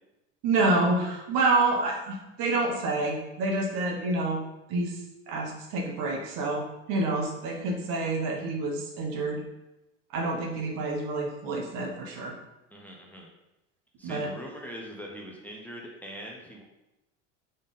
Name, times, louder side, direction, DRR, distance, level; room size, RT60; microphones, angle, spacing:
voice 1, 0.4-4.4 4.7-5.0 5.3-9.4 10.1-12.3 14.0-14.3, right 2 dB, 60° right, 1 dB, 1.2 m, -28 dB
voice 2, 12.7-13.3 14.0-16.6, equal, 5° left, -2 dB, 0.7 m, -42 dB
4.2 x 3.5 x 3.6 m, 0.94 s
supercardioid pair, 95°, 36 cm